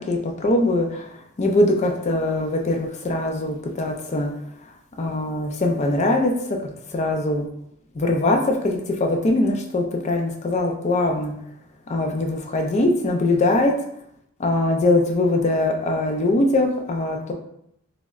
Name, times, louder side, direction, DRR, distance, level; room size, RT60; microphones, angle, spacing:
voice 1, 0.0-4.3 4.6-6.3 6.6-7.5 7.9-11.3 11.9-13.7 14.4-17.3, left 2 dB, 30° left, 2 dB, 0.4 m, -22 dB
3.1 x 2.0 x 3.5 m, 0.75 s
head